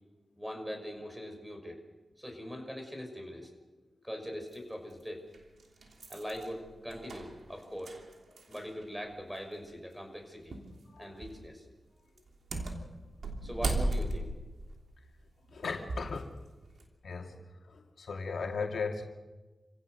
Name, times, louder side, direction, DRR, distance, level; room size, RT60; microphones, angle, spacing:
voice 1, 0.4-1.8 2.2-3.5 4.0-5.2 6.1-8.0 8.5-10.6 11.0-11.6 13.4-14.3, equal, 5° right, 4 dB, 5.9 m, -41 dB
sound 1, 4.5-4.6 5.3-8.8 9.1-9.2 10.5-10.8 11.2-11.5 12.2-16.2 16.6-16.9, right 2 dB, 80° right, 3.1 m, -36 dB
voice 2, 15.5-16.5 17.0-19.0, left 4 dB, 85° left, 2 dB, 2.4 m, -38 dB
28.0 x 17.0 x 6.4 m, 1.2 s
cardioid pair, 60°, 0 cm